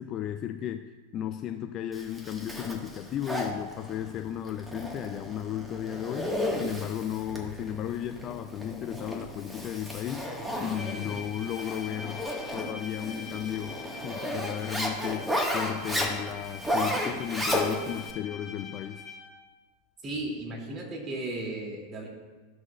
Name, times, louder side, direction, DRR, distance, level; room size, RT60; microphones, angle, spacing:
voice 1, 0.0-10.3 10.6-13.8 14.0-19.0, left 10 dB, 40° left, 8 dB, 0.4 m, -34 dB
Zipper (clothing), 1.9-18.1, equal, 5° right, 1.4 m, -33 dB
Bowed string instrument, 10.7-19.5, left 5 dB, 10° left, 2.0 m, -44 dB
voice 2, 20.0-22.1, right 2 dB, 30° right, -1 dB, 2.3 m, -35 dB
13.5 x 6.2 x 2.3 m, 1.3 s
hypercardioid pair, 90°, 0 cm